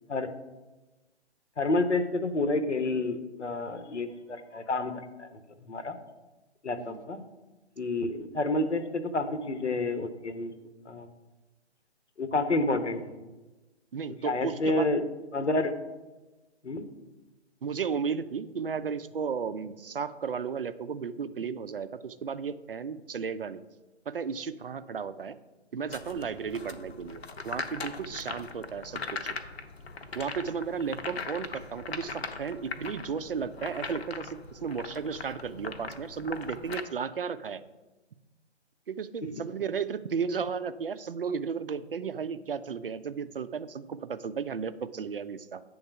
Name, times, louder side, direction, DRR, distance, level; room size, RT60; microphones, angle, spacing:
voice 1, 1.6-5.3 5.7-6.0 6.6-7.2 7.8-10.5 10.9-11.1 12.2-13.2 14.2-15.0 15.3-15.7 16.6-16.9, left 2 dB, 80° left, 9 dB, 1.1 m, -29 dB
voice 2, 13.9-14.9 17.6-23.6 24.1-25.4 25.7-29.3 30.1-37.6 38.9-45.6, right 6 dB, 55° right, 13 dB, 0.5 m, -34 dB
sound 1, 25.9-36.8, left 4 dB, 60° left, 0.8 m, -40 dB
8.6 x 3.9 x 5.7 m, 1.1 s
figure-of-eight pair, 140°, 35 cm